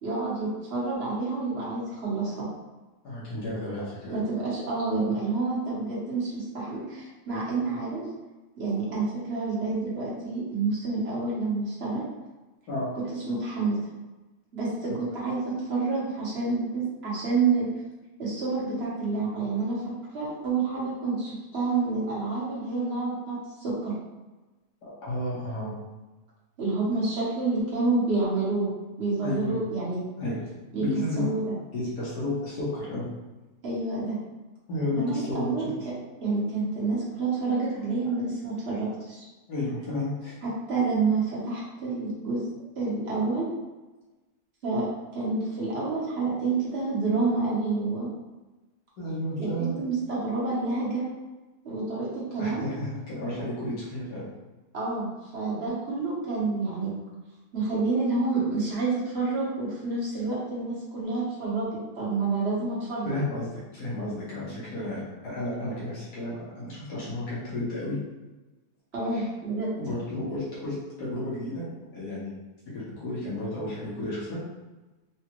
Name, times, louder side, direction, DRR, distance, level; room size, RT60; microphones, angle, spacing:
voice 1, 0.0-2.5 4.1-8.0 8.6-12.0 12.9-13.8 14.5-17.7 18.2-19.8 20.1-23.9 26.6-28.7 29.0-30.0 30.7-30.8 31.2-31.5 33.6-34.2 34.9-35.9 36.2-39.2 40.4-42.4 42.8-43.5 44.6-44.9 45.1-48.1 49.4-49.5 49.8-51.1 51.6-52.6 54.7-56.9 57.5-63.2 68.9-69.7, right 3 dB, 45° right, -6 dB, 1.2 m, -28 dB
voice 2, 3.0-4.2 12.7-12.9 24.8-25.7 29.2-29.5 30.2-30.4 30.8-31.3 31.7-33.1 34.7-35.7 39.5-40.3 49.0-49.8 52.3-54.3 63.0-68.0 69.1-69.3 69.8-71.7 71.9-72.3 72.7-74.4, left 1 dB, 75° left, -8 dB, 1.7 m, -32 dB
4.0 x 2.4 x 2.9 m, 1.1 s
omnidirectional pair, 1.7 m